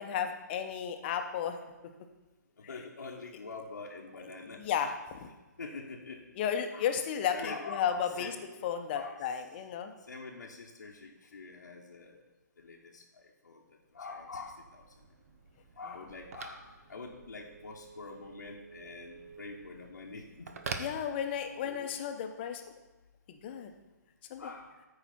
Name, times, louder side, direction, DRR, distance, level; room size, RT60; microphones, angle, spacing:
voice 1, 0.0-1.6 4.6-4.9 5.2-5.3 6.4-8.4 8.6-9.9 20.8-22.6 23.3-23.7 24.3-24.5, left 8 dB, 35° left, 6 dB, 0.8 m, -33 dB
voice 2, 2.6-4.7 5.6-6.2 6.7-6.9 7.3-8.4 8.9-9.3 10.0-12.2 12.6-14.8 15.8-20.5 21.6-21.9 24.4-24.7, left 4 dB, 75° left, -3 dB, 1.0 m, -45 dB
Telephone, 13.9-21.8, right 5 dB, 50° right, 0.9 m, -47 dB
13.5 x 4.9 x 4.2 m, 1.2 s
figure-of-eight pair, 140°, 10 cm